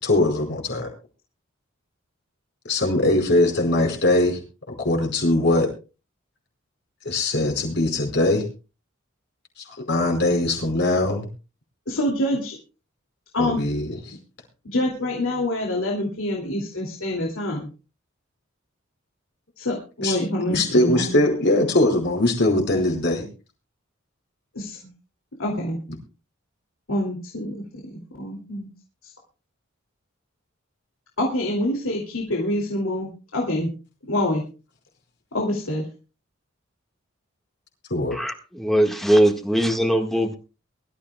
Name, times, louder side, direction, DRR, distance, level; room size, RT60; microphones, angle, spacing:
voice 1, 0.0-0.9 2.7-4.4 4.8-5.7 7.0-8.4 9.9-11.3 13.4-13.9 20.0-20.2 20.5-23.2 37.9-38.2, left 2 dB, 60° left, 2 dB, 5.0 m, -21 dB
voice 2, 11.9-12.6 13.3-13.6 14.1-14.2 14.6-17.7 19.6-21.2 24.5-24.9 25.4-25.8 26.9-28.7 29.0-29.1 31.2-33.7 34.0-34.4 35.3-35.8, left 1 dB, 90° left, -1 dB, 2.7 m, -26 dB
voice 3, 38.1-40.4, right 1 dB, ahead, 4 dB, 1.6 m, -20 dB
23.0 x 13.5 x 2.3 m, 0.32 s
head